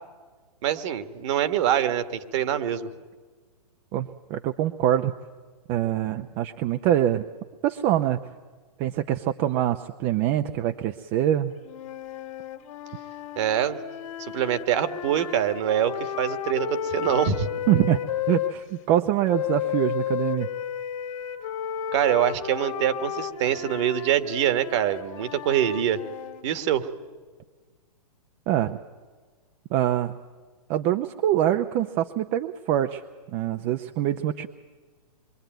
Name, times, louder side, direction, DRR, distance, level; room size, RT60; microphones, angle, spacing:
voice 1, 0.6-2.9 13.4-13.8 14.2-17.5 21.9-26.0 26.4-26.9, right 10 dB, 45° right, 10 dB, 1.8 m, -24 dB
voice 2, 3.9-5.1 5.7-7.2 7.6-8.2 8.8-11.5 17.7-18.0 18.3-20.5 28.5-28.8 29.7-30.2 30.7-33.0 33.3-34.5, right 12 dB, 30° right, 7 dB, 0.7 m, -24 dB
sound 1, 11.6-18.6 19.3-26.5, left 10 dB, 55° left, 2.0 m, -33 dB
26.5 x 23.5 x 9.2 m, 1.4 s
hypercardioid pair, 130°, 20 cm